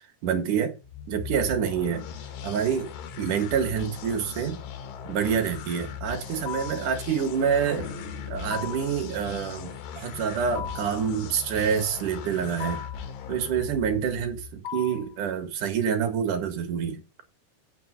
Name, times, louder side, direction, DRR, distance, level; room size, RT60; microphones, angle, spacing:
voice 1, 0.2-0.7 1.1-2.0 2.4-2.9 3.2-4.6 5.0-7.9 8.3-12.8 13.3-17.0, right 7 dB, 55° right, 2.9 m, -27 dB
sound 1, 0.8-14.6, left 8 dB, 90° left, 3.5 m, -39 dB
sound 2, 6.5-6.9 8.5-9.0 10.6-11.0 12.6-13.1 14.6-15.1, left 8 dB, 70° left, 2.1 m, -36 dB
sound 3, 7.7-10.1, left 4 dB, 40° left, 2.8 m, -42 dB
8.0 x 7.1 x 6.4 m
omnidirectional pair, 4.8 m